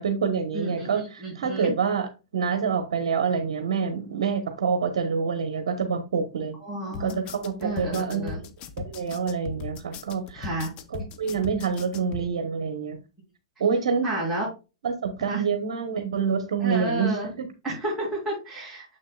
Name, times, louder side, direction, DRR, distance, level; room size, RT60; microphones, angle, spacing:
voice 1, 0.0-2.1 2.3-6.6 7.0-8.3 8.8-10.5 10.9-13.0 13.6-14.1 14.8-17.5, right 6 dB, 75° right, 6 dB, 1.1 m, -27 dB
voice 2, 0.5-1.8 6.6-7.2 7.6-8.4 10.3-10.7 14.0-14.5 15.3-15.4 16.6-17.3 17.6-18.8, right 1 dB, 5° right, -9 dB, 3.9 m, -31 dB
sound 1, 6.9-12.3, left 5 dB, 35° left, 0.8 m, -38 dB
6.9 x 6.4 x 2.3 m, 0.29 s
hypercardioid pair, 135°, 3 cm